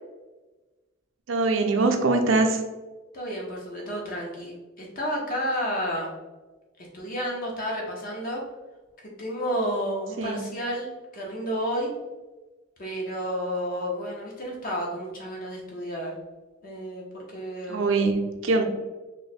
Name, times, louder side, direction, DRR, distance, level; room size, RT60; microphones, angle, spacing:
voice 1, 1.3-2.6 10.2-10.5 17.7-18.6, right 3 dB, 65° right, 4 dB, 0.5 m, -23 dB
voice 2, 3.1-6.1 6.9-8.4 9.0-11.9 12.8-16.1 16.6-17.8, equal, 45° left, -3 dB, 0.6 m, -31 dB
3.0 x 2.1 x 4.0 m, 1.2 s
head